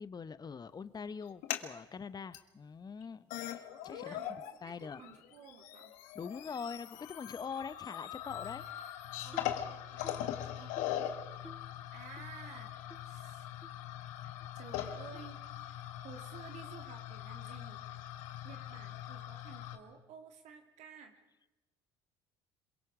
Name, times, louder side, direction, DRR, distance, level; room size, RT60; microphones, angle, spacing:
voice 1, 0.0-4.2 4.6-5.0 6.1-8.6, left 6 dB, 30° left, 15 dB, 1.0 m, -43 dB
sound 1, 1.2-1.7 2.3-2.4 3.0-3.1 3.3-4.5 4.8-19.8, left 12 dB, 70° left, 1.6 m, -41 dB
voice 2, 3.9-5.9 9.2-10.8 11.9-12.7 13.0-13.5 14.5-15.4 16.0-17.9 18.4-21.1, right 6 dB, 60° right, 4 dB, 2.6 m, -53 dB
sound 2, 9.3-9.6 10.0-10.3 10.8-11.0 11.4-11.7 12.2-12.3 12.9-13.0 13.6-13.7 14.4-14.5 15.1-15.3, right 2 dB, 5° right, 2.6 m, -52 dB
27.5 x 22.5 x 5.0 m, 0.99 s
hypercardioid pair, 60°, 13 cm